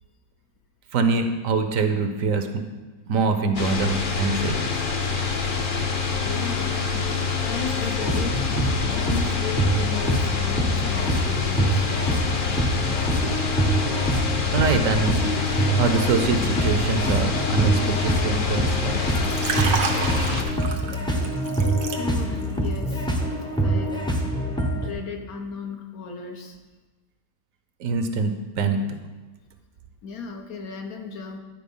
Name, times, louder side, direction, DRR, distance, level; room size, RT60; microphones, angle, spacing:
voice 1, 0.9-2.5 3.1-4.6 14.5-15.2 15.8-19.0 27.8-28.3 28.6-28.8, right 4 dB, 70° right, 7 dB, 1.0 m, -24 dB
sound 1, 3.5-20.4, left 5 dB, 45° left, 0.8 m, -26 dB
voice 2, 6.2-7.0 7.4-8.6 8.8-12.5 22.0-23.3 23.6-24.1 24.7-26.6 30.0-31.4, left 5 dB, 75° left, 4 dB, 1.4 m, -35 dB
sound 2, 8.0-24.9, right 1 dB, 5° left, 0.4 m, -25 dB
Liquid, 19.1-22.5 22.8-23.0, right 5 dB, 85° right, 1.3 m, -30 dB
10.5 x 4.4 x 5.4 m, 1.3 s
omnidirectional pair, 1.6 m